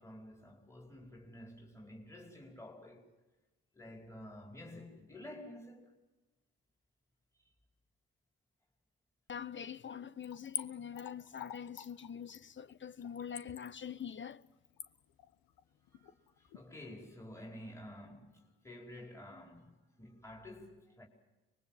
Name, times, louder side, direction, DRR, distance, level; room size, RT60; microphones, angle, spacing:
voice 1, 0.0-3.1 3.7-5.9 15.9-21.1, left 1 dB, 10° left, 4.9 m, -51 dB
voice 2, 9.3-14.4, left 8 dB, 35° left, 0.9 m, -44 dB
Splash splatter / Trickle dribble, 10.2-16.6 17.0-17.1, left 11 dB, 80° left, 1.3 m, -47 dB
24.0 x 21.5 x 7.5 m
supercardioid pair, 70°, 34 cm